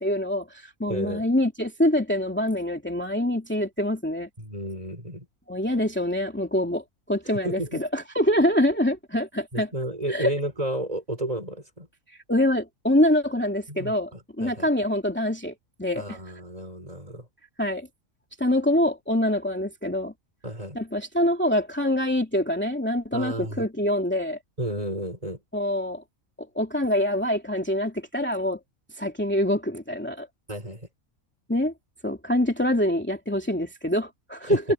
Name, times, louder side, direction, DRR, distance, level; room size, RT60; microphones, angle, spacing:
voice 1, 0.0-4.3 5.5-9.7 10.1-10.3 12.3-15.5 15.8-16.2 17.6-17.9 18.4-20.1 20.7-24.4 25.5-26.0 26.4-28.6 28.9-30.3 31.5-31.7 32.0-34.6, left 1 dB, 10° left, 2.7 m, -25 dB
voice 2, 0.9-1.3 4.4-5.3 7.4-7.8 9.5-11.9 13.7-14.7 15.9-17.3 20.4-20.8 23.1-23.7 24.6-25.4 30.5-30.9 34.5-34.6, right 1 dB, 25° right, 5.2 m, -32 dB
omnidirectional pair, 1.4 m